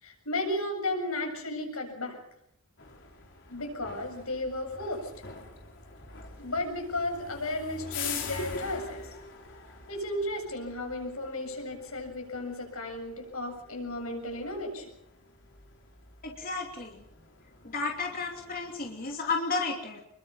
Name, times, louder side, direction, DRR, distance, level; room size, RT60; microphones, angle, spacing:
voice 1, 0.0-2.2 3.5-5.1 6.4-9.1 9.9-14.9, left 1 dB, 90° left, 3 dB, 7.6 m, -34 dB
sound 1, 2.8-19.1, left 5 dB, 60° left, 5.0 m, -44 dB
voice 2, 16.2-16.9 17.7-20.0, left 4 dB, 45° left, 1 dB, 2.9 m, -32 dB
28.0 x 22.5 x 5.6 m, 0.75 s
head